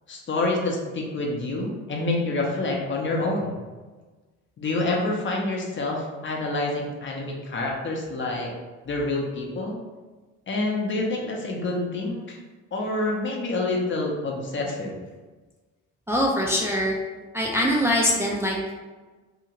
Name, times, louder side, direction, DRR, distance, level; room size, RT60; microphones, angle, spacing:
voice 1, 0.1-3.6 4.6-8.5 8.9-9.8 10.5-12.4 12.7-15.0, left 2 dB, 40° left, -1 dB, 0.6 m, -27 dB
voice 2, 16.1-17.0 17.3-18.7, equal, 10° right, -3 dB, 0.4 m, -23 dB
2.8 x 2.3 x 2.8 m, 1.3 s
cardioid pair, 90°, 30 cm